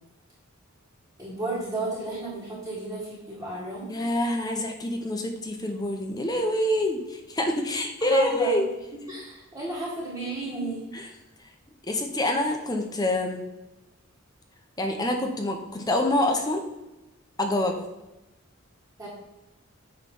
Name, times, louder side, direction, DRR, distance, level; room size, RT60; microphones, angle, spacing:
voice 1, 1.2-3.9 8.0-8.6 9.1-10.9 19.0-19.1, right 2 dB, 15° right, -9 dB, 1.8 m, -33 dB
voice 2, 3.9-8.7 10.9-11.1 11.8-13.4 14.8-16.6 17.4-17.8, left 1 dB, 20° left, 3 dB, 0.7 m, -26 dB
8.8 x 3.2 x 5.4 m, 1.0 s
head